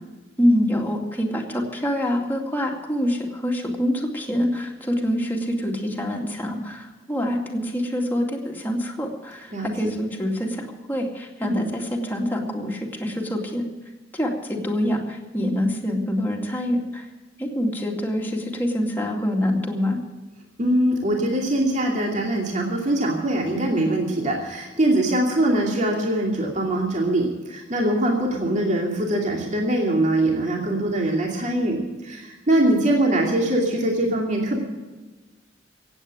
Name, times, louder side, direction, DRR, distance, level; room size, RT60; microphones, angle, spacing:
voice 1, 0.4-13.6 14.1-17.1 17.4-20.0, equal, 10° left, 0 dB, 2.3 m, -25 dB
voice 2, 9.5-9.9 11.4-11.6 20.6-34.6, right 1 dB, 40° right, 0 dB, 2.6 m, -22 dB
16.5 x 8.8 x 8.7 m, 1.2 s
head